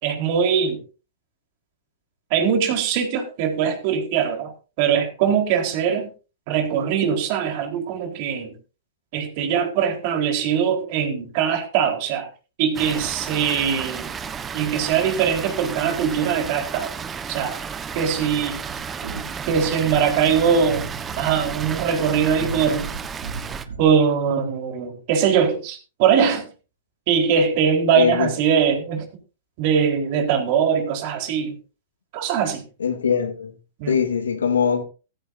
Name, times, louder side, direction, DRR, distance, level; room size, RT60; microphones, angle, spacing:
voice 1, 0.0-0.8 2.3-4.5 4.8-6.1 6.5-8.5 9.1-12.3 12.6-14.1 14.5-16.9 17.3-17.6 17.9-18.6 19.5-20.9 21.2-22.9 23.8-26.5 27.1-29.1 29.6-31.5 32.1-32.6 33.8-34.0, right 7 dB, 50° right, 4.3 m, -21 dB
Water, 12.7-23.6, right 6 dB, 20° right, 1.3 m, -33 dB
sound 1, 18.7-24.0, right 4 dB, 75° right, 3.1 m, -37 dB
voice 2, 27.9-28.3 32.8-33.5 33.9-34.8, left 7 dB, 80° left, 2.6 m, -21 dB
15.0 x 15.0 x 2.7 m
hypercardioid pair, 110°, 0 cm